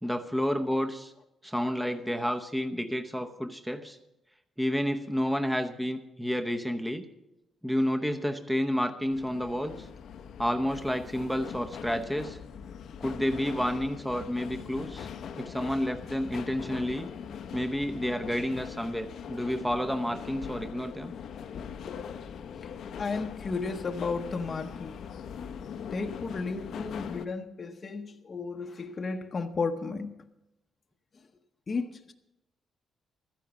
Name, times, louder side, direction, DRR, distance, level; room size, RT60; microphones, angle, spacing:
voice 1, 0.0-1.1 1.4-4.0 4.6-7.0 7.6-9.9 10.4-12.4 13.0-15.1 15.4-17.1 17.5-21.1, equal, 5° right, 6 dB, 0.8 m, -30 dB
sound 1, 9.1-27.3, left 7 dB, 70° left, 0.7 m, -41 dB
voice 2, 23.0-25.0 25.9-30.2 31.7-32.1, left 4 dB, 35° left, 4 dB, 0.8 m, -33 dB
13.5 x 10.5 x 7.0 m, 0.90 s
cardioid pair, 120°, 0 cm